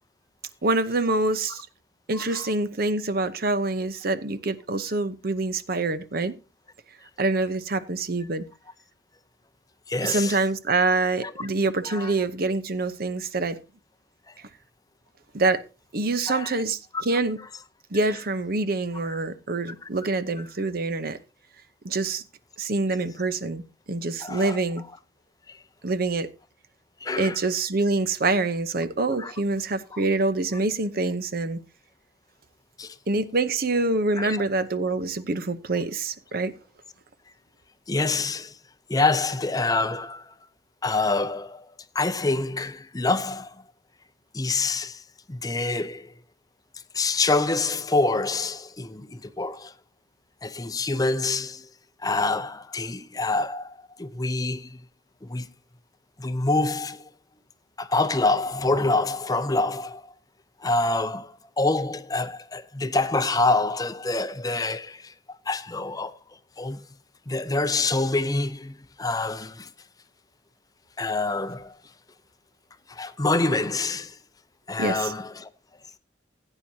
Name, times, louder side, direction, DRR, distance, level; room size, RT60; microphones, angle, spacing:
voice 1, 0.6-1.7 2.1-6.4 7.2-8.5 10.0-13.6 15.3-15.6 15.9-17.4 17.9-21.2 21.8-22.2 22.6-24.8 25.8-26.3 27.2-31.6 33.1-36.5 74.8-75.1, right 3 dB, 55° right, 0.8 m, -26 dB
voice 2, 2.1-2.5 9.9-10.4 11.2-11.3 11.9-12.1 16.3-16.5 16.9-17.0 19.1-19.2 24.2-24.6 25.5-25.6 27.0-27.4 29.2-29.3 29.9-30.0 32.8-33.0 34.2-34.4 37.9-38.6 38.9-40.3 40.8-41.7 41.9-43.5 44.3-45.0 45.3-46.1 46.9-49.7 50.4-51.7 52.0-54.8 55.2-55.5 56.2-57.1 57.8-60.1 60.6-65.1 65.5-66.2 66.6-66.8 67.3-69.7 71.0-71.8 72.9-74.2 74.7-75.5, left 3 dB, 20° left, 0.6 m, -26 dB
16.0 x 9.0 x 2.7 m
head